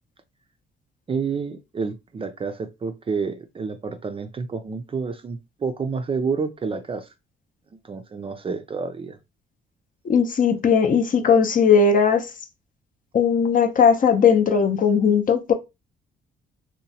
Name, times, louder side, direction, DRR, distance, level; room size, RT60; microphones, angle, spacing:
voice 1, 1.1-7.1 7.8-9.2, right 5 dB, 30° right, 0.4 m, -29 dB
voice 2, 10.0-12.3 13.1-15.5, left 6 dB, 45° left, 0.5 m, -18 dB
2.9 x 2.1 x 2.7 m
cardioid pair, 90°, 20 cm